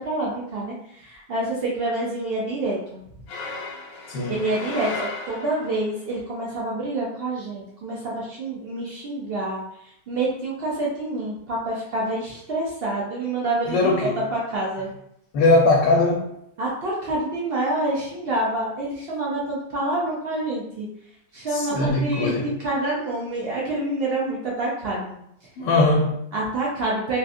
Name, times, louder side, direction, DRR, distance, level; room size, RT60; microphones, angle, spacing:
voice 1, 0.0-3.0 4.3-9.6 10.1-14.9 16.6-20.9 21.3-25.2 26.3-27.2, right 2 dB, 90° right, -5 dB, 0.5 m, -27 dB
sound 1, 3.3-5.9, left 3 dB, 70° left, 0.8 m, -34 dB
voice 2, 4.1-4.4 13.7-14.2 15.3-16.2 21.5-22.5 25.6-26.2, left 2 dB, 90° left, -2 dB, 1.3 m, -20 dB
3.6 x 2.6 x 2.4 m, 0.76 s
omnidirectional pair, 1.9 m